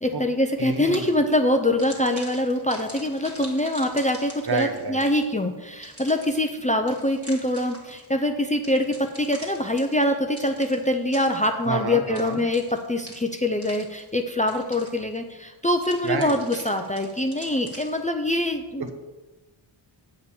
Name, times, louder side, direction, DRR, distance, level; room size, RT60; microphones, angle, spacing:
voice 1, 0.0-18.9, left 1 dB, 15° left, 5 dB, 0.6 m, -24 dB
sound 1, 0.6-1.3 1.8-5.4 5.8-8.1 8.6-11.7 12.1-14.2 14.5-15.2 15.8-18.1, right 1 dB, 30° right, 2.0 m, -44 dB
voice 2, 0.6-1.1 4.5-5.0 11.7-12.4 16.0-16.4 18.8-18.9, right 4 dB, 50° right, 5 dB, 1.1 m, -28 dB
8.7 x 5.3 x 7.0 m, 1.2 s
wide cardioid pair, 120°, 49 cm